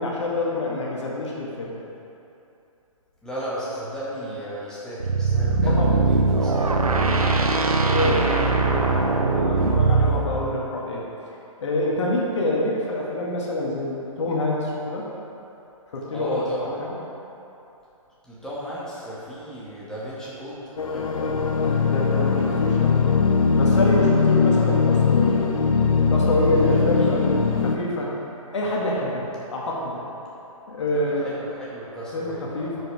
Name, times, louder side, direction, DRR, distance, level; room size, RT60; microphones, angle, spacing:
voice 1, 0.0-1.8 5.6-5.9 7.7-11.1 11.6-15.1 15.9-17.1 21.6-23.0 23.6-25.5 26.1-27.3 27.6-28.2 28.5-30.1 30.7-31.3 32.1-32.8, left 1 dB, 55° left, -3 dB, 1.8 m, -26 dB
voice 2, 3.2-7.1 16.1-16.8 18.2-21.4 26.6-27.3 30.9-32.8, equal, 5° left, -10 dB, 2.0 m, -35 dB
sound 1, 5.0-10.3, right 3 dB, 85° right, 0.9 m, -21 dB
sound 2, 20.8-27.8, left 5 dB, 70° left, 0.8 m, -20 dB
13.0 x 6.6 x 3.5 m, 2.9 s
figure-of-eight pair, 130°, 18 cm